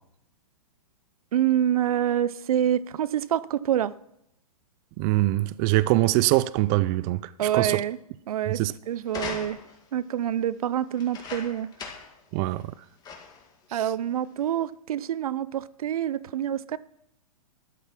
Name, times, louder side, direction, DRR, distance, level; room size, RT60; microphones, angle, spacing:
voice 1, 1.3-3.9 7.4-8.0 8.3-9.6 9.9-11.7 13.7-16.8, right 10 dB, 75° right, 0.6 m, -26 dB
voice 2, 5.0-7.8 8.6-8.7 12.3-12.6, right 18 dB, 30° right, 0.4 m, -23 dB
sound 1, 9.1-9.9 10.9-12.2 12.6-12.7 13.0-13.5 14.2-14.3, left 5 dB, 20° left, 2.1 m, -39 dB
12.5 x 9.1 x 5.9 m
hypercardioid pair, 135°, 19 cm